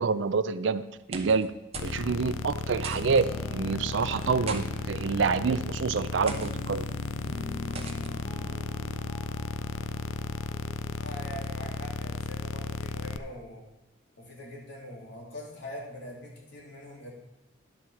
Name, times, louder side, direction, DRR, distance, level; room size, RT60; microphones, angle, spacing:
voice 1, 0.0-1.5 1.8-6.8, right 5 dB, 65° right, 14 dB, 0.4 m, -27 dB
sound 1, 0.9-1.5 1.7-2.0 2.3-2.4 2.8-3.2 4.2-4.6 5.4-5.6 6.3-6.5 7.7-8.1, right 5 dB, 30° right, 0.8 m, -40 dB
sound 2, 1.7-13.2, left 4 dB, 80° left, 0.4 m, -34 dB
sound 3, 2.9-13.1, left 1 dB, 25° left, 2.0 m, -44 dB
voice 2, 11.0-13.6 14.2-17.1, left 1 dB, 60° left, -3 dB, 2.8 m, -43 dB
10.5 x 4.7 x 7.0 m, 1.0 s
head